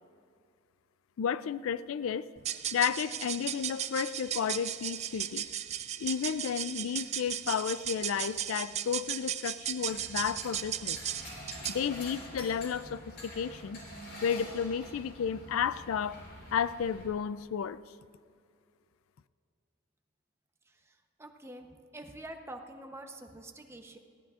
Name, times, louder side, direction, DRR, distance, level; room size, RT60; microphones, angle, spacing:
voice 1, 1.2-2.2 2.7-5.5 6.0-11.0 11.7-13.8 14.2-16.2 16.5-17.8, left 7 dB, 80° left, 16 dB, 0.4 m, -32 dB
sound 1, 2.4-11.9, right 10 dB, 30° right, 0.4 m, -36 dB
sound 2, 9.9-17.1, left 1 dB, 55° left, 4.0 m, -46 dB
voice 2, 21.2-24.0, right 1 dB, 15° right, 5 dB, 0.8 m, -46 dB
20.0 x 16.0 x 2.5 m, 2.3 s
head